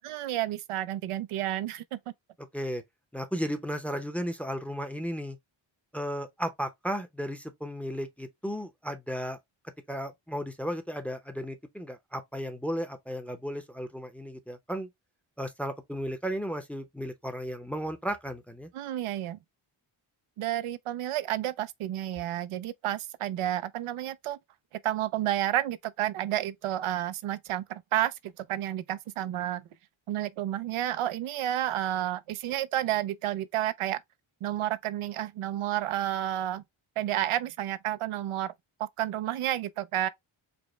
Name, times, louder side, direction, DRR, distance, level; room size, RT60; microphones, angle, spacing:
voice 1, 0.0-2.0 18.7-19.4 20.4-24.4 24.8-29.6 30.1-34.0 34.4-36.6 37.0-38.5 38.8-40.1, right 12 dB, 85° right, 0.5 m, -31 dB
voice 2, 3.1-5.4 5.9-9.4 9.9-14.9 15.4-18.7, equal, 5° left, 0.6 m, -34 dB
5.0 x 2.1 x 3.0 m
wide cardioid pair, 120°, 49 cm